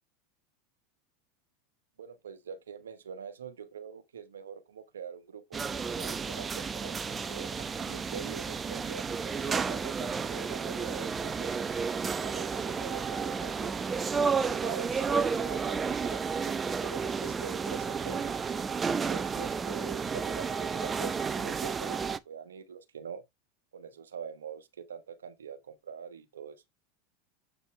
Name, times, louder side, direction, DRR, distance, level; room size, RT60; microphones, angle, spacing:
voice 1, 2.0-5.6 5.9-11.6 12.2-13.9 14.4-18.4 19.1-22.0 22.2-23.2 23.7-26.6, right 7 dB, 85° right, 1.2 m, -44 dB
sound 1, 5.5-22.2, right 5 dB, 20° right, 0.7 m, -32 dB
8.0 x 5.4 x 3.2 m
hypercardioid pair, 90°, 0 cm